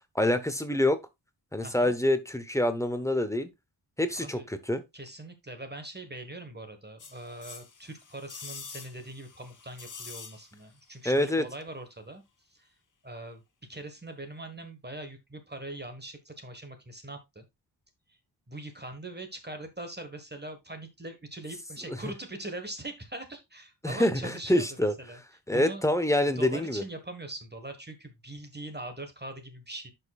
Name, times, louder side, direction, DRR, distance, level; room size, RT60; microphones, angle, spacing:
voice 1, 0.2-1.0 1.5-3.5 4.0-4.8 11.0-11.4 21.9-22.0 23.8-24.9 25.5-26.8, left 1 dB, 5° left, 0.9 m, -26 dB
voice 2, 1.6-1.9 4.2-4.5 4.9-12.2 12.5-12.7 13.0-13.4 13.7-17.5 18.5-25.2 25.5-25.8 26.2-29.9, right 2 dB, 25° right, 1.3 m, -42 dB
sound 1, 7.0-10.8 11.1-11.2, left 5 dB, 45° left, 1.1 m, -46 dB
10.5 x 5.4 x 2.4 m
wide cardioid pair, 115°, 43 cm